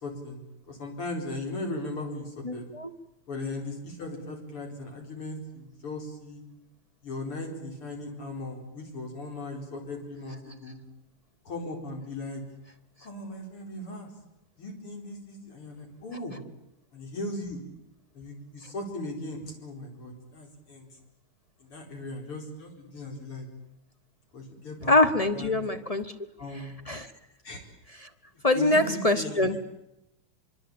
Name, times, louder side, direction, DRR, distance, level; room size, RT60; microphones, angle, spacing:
voice 1, 0.0-2.7 3.3-6.4 7.0-10.8 11.5-12.4 13.0-14.1 14.6-16.4 16.9-17.6 18.2-20.9 21.6-23.5 24.3-24.9 25.3-25.6 26.4-26.8 27.4-27.6 28.5-29.5, left 2 dB, 85° left, 2 dB, 5.3 m, -38 dB
voice 2, 2.4-2.9 24.9-26.1 26.9-27.1 28.0-28.1 28.4-29.6, left 2 dB, 30° left, 9 dB, 0.6 m, -24 dB
24.5 x 24.0 x 8.7 m, 0.89 s
omnidirectional pair, 2.4 m